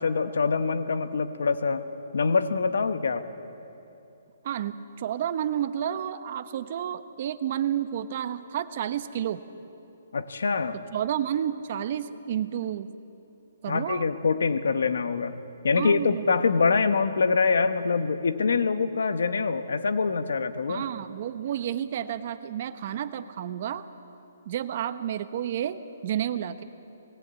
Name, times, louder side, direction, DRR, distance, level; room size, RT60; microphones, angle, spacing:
voice 1, 0.0-1.8 2.1-3.3 10.1-10.8 13.7-15.4 15.6-20.8, left 4 dB, 85° left, 9 dB, 1.2 m, -25 dB
voice 2, 4.4-9.4 10.9-12.9 13.6-14.0 15.7-16.3 20.7-23.8 24.5-26.6, right 10 dB, 45° right, 11 dB, 0.9 m, -30 dB
19.5 x 19.5 x 8.3 m, 2.8 s
hypercardioid pair, 160°, 0 cm